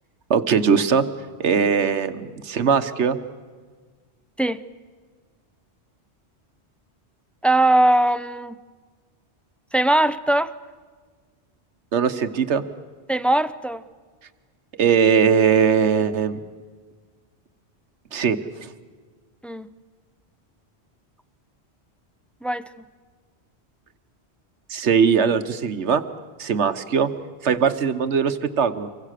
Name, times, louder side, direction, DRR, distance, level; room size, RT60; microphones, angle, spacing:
voice 1, 0.3-1.0 1.4-3.2 11.9-12.6 14.8-16.4 18.1-18.4 24.7-26.0 26.4-27.1 27.4-28.9, right 6 dB, 80° right, 10 dB, 1.4 m, -20 dB
voice 2, 7.4-8.6 9.7-10.5 13.1-13.8 19.4-19.7 22.4-22.6, right 1 dB, ahead, 12 dB, 0.4 m, -20 dB
26.0 x 23.5 x 6.6 m, 1.5 s
omnidirectional pair, 1.1 m